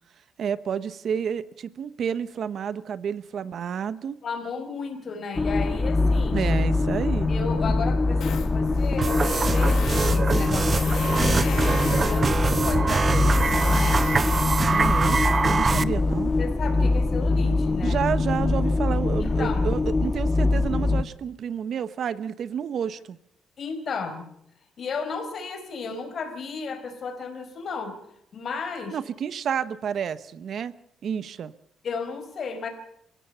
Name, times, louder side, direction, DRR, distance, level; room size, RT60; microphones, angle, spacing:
voice 1, 0.4-4.2 6.3-7.3 14.7-15.2 15.6-16.3 17.8-23.2 28.9-30.7 31.0-31.5, right 8 dB, 60° right, 15 dB, 1.0 m, -30 dB
voice 2, 4.2-6.4 7.3-14.0 16.4-18.0 19.2-19.8 23.6-24.3 24.8-28.0 28.3-29.0 31.8-32.7, left 5 dB, 50° left, 7 dB, 4.7 m, -34 dB
sound 1, 5.3-21.0, left 3 dB, 20° left, 1.3 m, -23 dB
Tools, 8.2-16.5, left 8 dB, 65° left, 1.7 m, -39 dB
sound 2, 9.0-15.8, right 4 dB, 35° right, 0.8 m, -24 dB
29.5 x 16.5 x 5.6 m, 0.73 s
cardioid pair, 110°, 0 cm